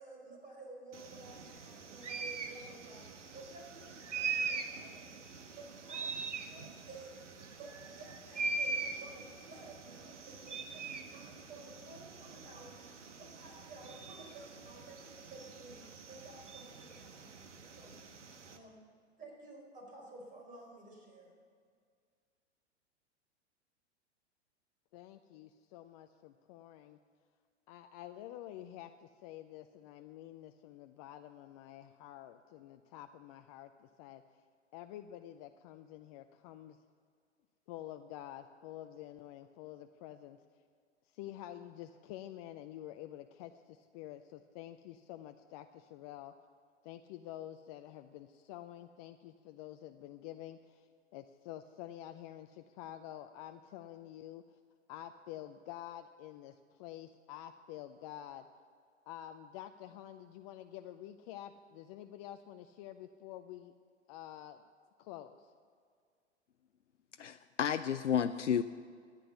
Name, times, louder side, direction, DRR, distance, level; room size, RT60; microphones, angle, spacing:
voice 1, 0.0-7.1 7.6-18.0 18.5-18.8 19.2-21.4, right 2 dB, 20° right, 0 dB, 4.3 m, -53 dB
sound 1, 0.9-18.6, right 4 dB, 80° right, 1.3 m, -43 dB
voice 2, 24.9-27.0 27.7-34.2 34.7-36.8 37.7-40.4 41.1-46.3 46.8-50.9 51.1-54.4 54.9-58.5 59.1-63.7 64.1-64.6 65.0-65.5, left 12 dB, 30° left, 8 dB, 0.4 m, -48 dB
voice 3, 67.2-68.6, left 8 dB, 90° left, 10 dB, 0.5 m, -31 dB
13.5 x 9.9 x 6.9 m, 2.1 s
hypercardioid pair, 110°, 35 cm